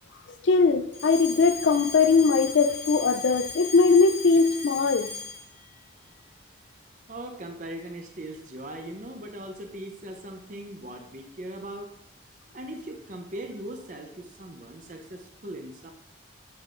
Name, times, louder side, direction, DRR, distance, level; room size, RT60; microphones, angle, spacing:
voice 1, 0.4-5.1, left 4 dB, 70° left, 0.4 m, -20 dB
Alarm, 0.9-5.6, left 5 dB, 10° left, 1.3 m, -37 dB
voice 2, 7.1-11.9 12.5-15.9, right 1 dB, 40° right, 0.7 m, -39 dB
8.4 x 7.6 x 2.5 m
head